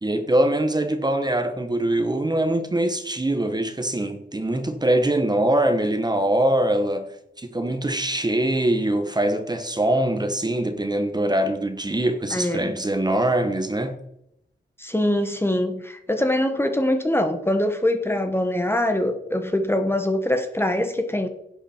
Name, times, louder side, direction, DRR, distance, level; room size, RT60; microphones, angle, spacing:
voice 1, 0.0-7.1 7.4-13.9, right 1 dB, 20° right, 1.1 m, -23 dB
voice 2, 12.3-12.7 14.8-21.3, left 1 dB, 10° left, 1.1 m, -23 dB
11.0 x 8.2 x 4.4 m
wide cardioid pair, 105°, 20 cm